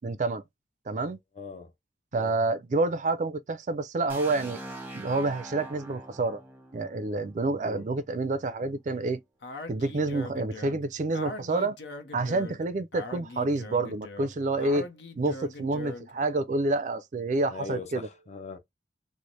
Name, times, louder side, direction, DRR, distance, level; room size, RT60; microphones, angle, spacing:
voice 1, 0.0-0.4 0.9-1.2 2.1-4.6 4.9-6.4 6.7-9.2 9.7-11.8 12.1-14.9 15.2-18.1, right 2 dB, 45° right, 0.4 m, -28 dB
voice 2, 1.3-1.7 2.1-2.4 7.6-7.9 17.5-18.6, left 3 dB, 40° left, 0.6 m, -40 dB
sound 1, 4.1-7.9, right 1 dB, 10° right, 0.7 m, -43 dB
Speech, 9.4-16.2, left 2 dB, 75° left, 0.7 m, -41 dB
3.2 x 2.0 x 3.9 m
head